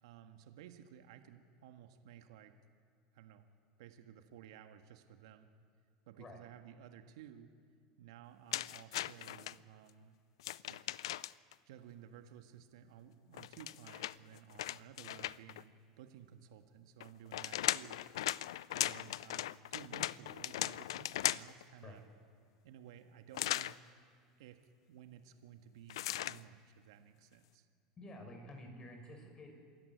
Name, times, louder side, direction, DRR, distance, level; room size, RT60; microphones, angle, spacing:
voice 1, 0.0-2.5 3.1-3.5 3.8-5.5 6.1-7.5 8.0-10.2 10.7-10.8 11.6-18.2 18.7-22.0 22.6-23.9 24.4-24.6 24.9-27.7, right 9 dB, 75° right, 7 dB, 1.5 m, -55 dB
sound 1, 8.5-9.5 10.4-11.5 13.3-15.6 17.0-21.6 23.3-23.8 25.9-26.4, left 14 dB, 80° left, 0.5 m, -38 dB
voice 2, 28.0-29.5, left 1 dB, 30° left, 3 dB, 7.0 m, -50 dB
26.5 x 14.0 x 9.5 m, 2.3 s
hypercardioid pair, 95°, 3 cm